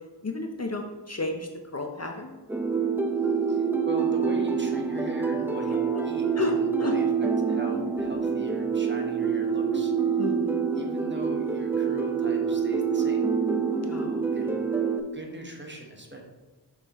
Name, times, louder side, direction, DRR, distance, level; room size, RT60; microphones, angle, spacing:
voice 1, 0.2-2.3 5.9-6.0 6.4-6.5 6.8-7.0 10.2-10.6 13.8-14.2, left 3 dB, 40° left, 3 dB, 0.6 m, -32 dB
sound 1, 2.5-15.0, right 6 dB, 5° right, 0.4 m, -26 dB
voice 2, 3.5-9.9 10.7-13.3 14.3-14.6 15.1-16.2, right 1 dB, 25° right, 1 dB, 1.1 m, -41 dB
6.3 x 5.1 x 3.0 m, 1.2 s
wide cardioid pair, 55°, 42 cm